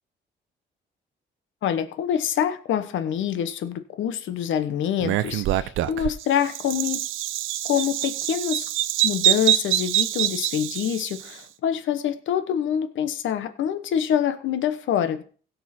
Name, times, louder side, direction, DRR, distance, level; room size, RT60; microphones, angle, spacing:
voice 1, 1.6-7.0 7.6-8.7 9.0-15.2, left 9 dB, 75° left, 10 dB, 1.1 m, -26 dB
Bird vocalization bird call bird song, 5.0-11.3, right 13 dB, 85° right, 0.6 m, -25 dB
16.5 x 5.6 x 4.3 m, 0.42 s
cardioid pair, 90°, 20 cm